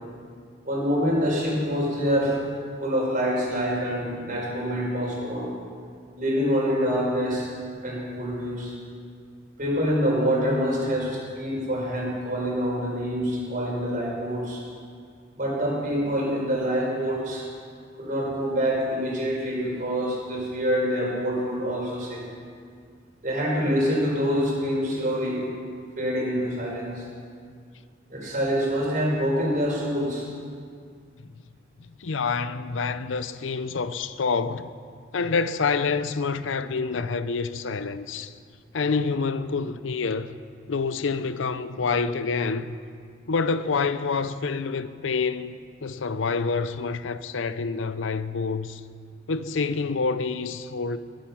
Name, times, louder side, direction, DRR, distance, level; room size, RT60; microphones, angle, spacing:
voice 1, 0.6-2.4 2.8-5.5 6.2-7.5 7.8-8.7 9.6-14.6 15.4-17.5 18.0-22.2 23.2-25.4 26.0-27.0 28.1-30.2, equal, 45° right, 4.8 m, -26 dB
voice 2, 32.0-34.7 35.1-38.3 38.7-40.4 40.7-42.8 43.3-45.6 45.8-48.8 49.3-51.0, left 4 dB, 85° left, 0.6 m, -27 dB
21.0 x 8.9 x 5.7 m
head